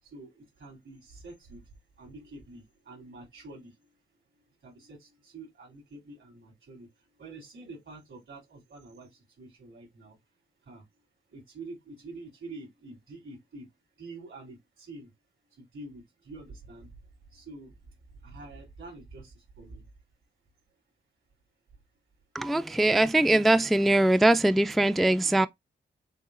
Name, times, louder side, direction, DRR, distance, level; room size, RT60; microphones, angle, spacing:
voice 1, 0.0-1.7 2.0-3.9 4.6-10.2 10.6-10.9 11.3-13.7 14.0-15.1 15.5-16.9 17.3-19.9 24.6-24.8 25.2-25.5, right 2 dB, 80° right, 3.4 m, -47 dB
voice 2, 22.3-25.5, right 1 dB, ahead, 0.3 m, -22 dB
6.9 x 2.3 x 2.5 m
cardioid pair, 65°, 20 cm